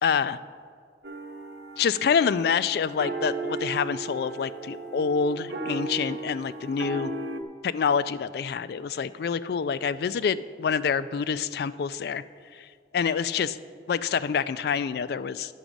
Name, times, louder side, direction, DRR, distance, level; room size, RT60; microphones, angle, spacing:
voice 1, 0.0-0.4 1.8-7.1 7.6-12.2 12.5-12.7 12.9-13.6 13.9-15.5, left 6 dB, 60° left, 16 dB, 0.3 m, -27 dB
sound 1, 1.0-7.4, right 2 dB, 65° right, 0.6 m, -35 dB
10.0 x 7.1 x 5.1 m, 2.2 s
head